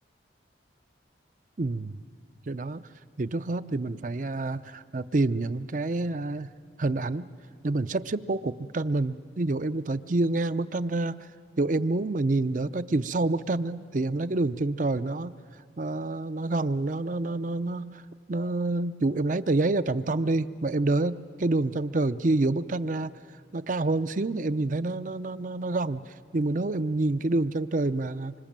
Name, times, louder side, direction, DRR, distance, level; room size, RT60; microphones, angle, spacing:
voice 1, 1.6-2.0 2.5-2.8 3.2-6.5 6.8-7.3 7.6-11.3 11.6-15.3 15.8-18.0 18.3-23.1 23.5-28.3, right 2 dB, 45° right, 14 dB, 0.6 m, -27 dB
26.0 x 25.5 x 7.5 m, 2.2 s
head